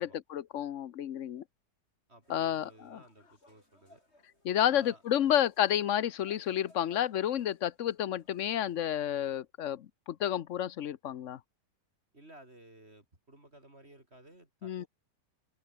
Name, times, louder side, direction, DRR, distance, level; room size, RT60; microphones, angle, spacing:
voice 1, 0.0-1.4 2.3-3.0 4.4-11.4 14.6-14.8, left 10 dB, 55° left, 0.9 m, -30 dB
voice 2, 2.1-4.0 4.6-5.3 12.1-14.9, right 1 dB, 35° right, 5.1 m, -56 dB
sound 1, 2.2-8.8, left 1 dB, 35° left, 7.0 m, -65 dB
omnidirectional pair, 1.9 m